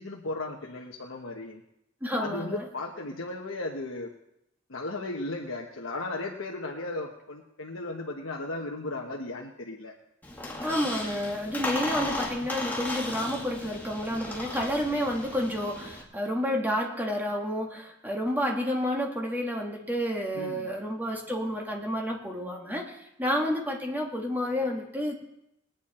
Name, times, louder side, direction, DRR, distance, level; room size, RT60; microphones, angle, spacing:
voice 1, 0.0-1.6 2.2-4.1 4.7-9.9 20.3-20.7, left 2 dB, 75° left, 0 dB, 1.2 m, -36 dB
voice 2, 2.0-2.7 10.6-25.2, equal, 10° right, 0 dB, 2.0 m, -30 dB
Squeak, 10.2-16.0, left 2 dB, 10° left, 2.0 m, -35 dB
20.5 x 9.3 x 4.4 m, 0.83 s
head